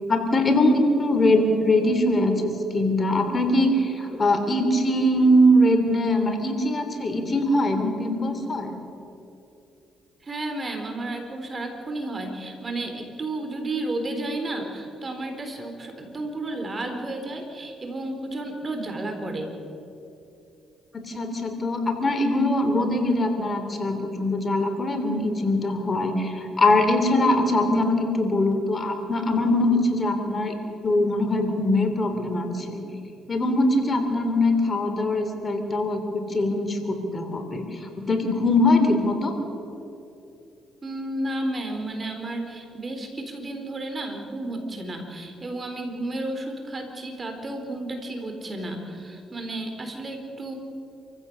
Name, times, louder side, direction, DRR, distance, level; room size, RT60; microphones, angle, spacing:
voice 1, 0.1-8.8 20.9-30.6 30.8-32.8 33.3-39.3, left 1 dB, 35° left, 6 dB, 3.2 m, -22 dB
voice 2, 10.2-19.5 40.8-50.5, right 2 dB, 35° right, 4 dB, 4.2 m, -32 dB
28.0 x 15.5 x 7.0 m, 2.8 s
supercardioid pair, 75°, 0 cm